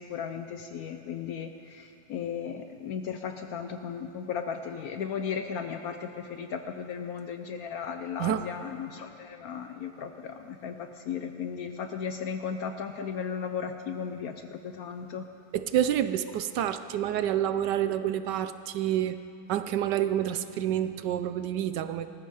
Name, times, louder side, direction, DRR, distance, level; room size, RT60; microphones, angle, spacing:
voice 1, 0.0-15.3, left 7 dB, 65° left, 7 dB, 0.9 m, -36 dB
voice 2, 15.5-19.2 19.5-22.1, right 11 dB, 75° right, 11 dB, 1.1 m, -28 dB
19.5 x 14.0 x 4.8 m, 2.7 s
omnidirectional pair, 2.0 m